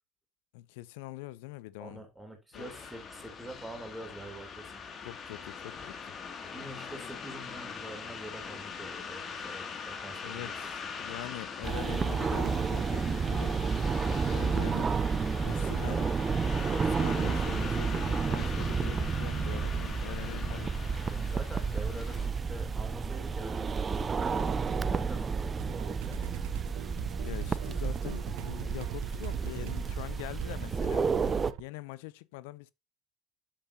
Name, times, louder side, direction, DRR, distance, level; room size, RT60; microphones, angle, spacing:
voice 1, 0.5-2.0 2.5-2.7 5.0-6.2 10.2-13.6 14.3-14.9 15.4-16.1 16.7-20.7 24.7-25.0 27.1-31.1 31.6-32.7, left 18 dB, 80° left, 0.5 m, -43 dB
voice 2, 1.8-4.7 6.5-10.5 21.0-26.4, right 1 dB, 10° right, 3.3 m, -45 dB
sound 1, 2.5-22.3, left 5 dB, 40° left, 2.4 m, -42 dB
sound 2, 11.6-31.5, right 5 dB, 30° right, 0.6 m, -31 dB
sound 3, 25.5-31.6, right 16 dB, 75° right, 0.7 m, -40 dB
8.6 x 7.5 x 2.8 m
supercardioid pair, 85°, 0 cm